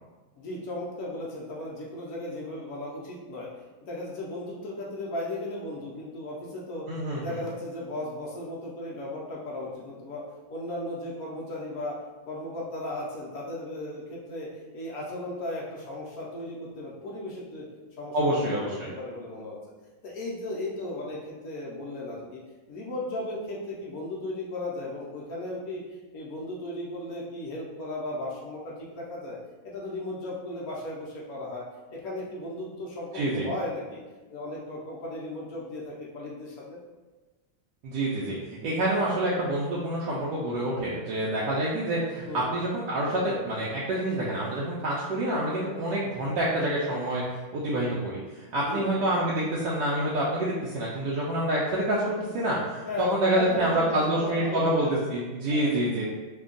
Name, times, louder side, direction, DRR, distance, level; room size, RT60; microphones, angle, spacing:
voice 1, 0.4-3.5 3.8-6.9 7.2-10.2 10.5-11.9 12.3-14.5 14.7-17.6 18.0-19.6 20.0-22.4 22.7-25.8 26.1-29.4 29.6-31.6 31.9-34.0 34.3-36.8 42.2-42.5 48.5-48.9 52.8-53.0 53.3-54.9 55.5-55.7, left 1 dB, 70° left, -4 dB, 0.9 m, -36 dB
voice 2, 6.9-7.2 18.1-18.9 33.1-33.5 37.8-38.3 38.6-47.2 47.5-56.0, right 1 dB, 75° right, -6 dB, 1.1 m, -27 dB
3.4 x 2.2 x 3.7 m, 1.2 s
omnidirectional pair, 2.2 m